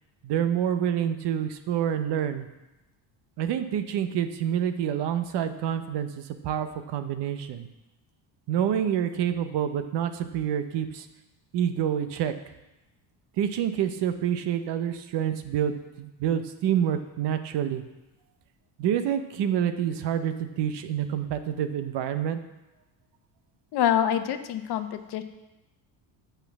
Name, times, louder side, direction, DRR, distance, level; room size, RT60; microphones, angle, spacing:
voice 1, 0.2-2.5 3.4-7.7 8.5-11.1 11.5-12.3 13.4-17.8 18.8-22.4, right 9 dB, 65° right, 9 dB, 0.9 m, -27 dB
voice 2, 23.7-25.2, left 10 dB, 60° left, 9 dB, 0.9 m, -26 dB
8.2 x 5.8 x 7.3 m, 0.99 s
cardioid pair, 130°, 45 cm